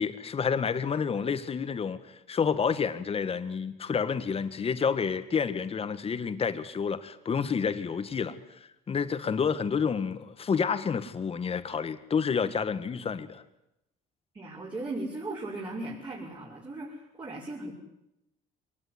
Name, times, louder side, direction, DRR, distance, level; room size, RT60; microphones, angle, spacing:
voice 1, 0.0-13.4, left 6 dB, 35° left, 11 dB, 1.9 m, -29 dB
voice 2, 14.3-17.7, right 2 dB, 30° right, -4 dB, 5.9 m, -37 dB
23.5 x 19.0 x 9.8 m, 0.87 s
cardioid pair, 110°, 17 cm